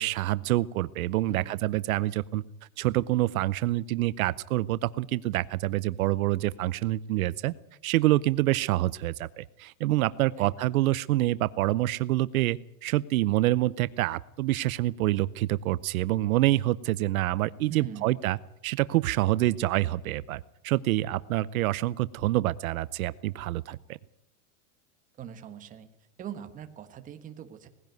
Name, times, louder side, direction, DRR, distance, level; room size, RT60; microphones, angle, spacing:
voice 1, 0.0-2.4 2.8-7.5 7.8-18.4 18.6-24.0, right 16 dB, 70° right, 18 dB, 0.7 m, -27 dB
voice 2, 1.3-1.7 10.4-10.5 17.7-18.1 25.2-25.9 26.2-27.7, right 9 dB, 20° right, 8 dB, 1.3 m, -41 dB
19.5 x 16.0 x 9.2 m, 0.82 s
supercardioid pair, 165°, 43 cm